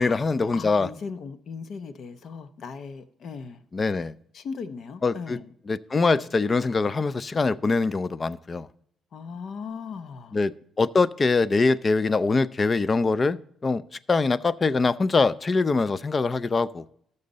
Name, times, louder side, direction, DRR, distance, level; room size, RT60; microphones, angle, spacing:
voice 1, 0.0-0.9 3.7-4.1 5.0-5.4 5.7-8.7 10.3-10.5 10.8-13.8 14.1-16.8, left 4 dB, 30° left, 18 dB, 0.4 m, -23 dB
voice 2, 0.5-3.6 4.3-5.5 9.1-10.4, left 5 dB, 60° left, 12 dB, 0.8 m, -38 dB
12.5 x 6.6 x 3.9 m, 0.71 s
cardioid pair, 90°, 0 cm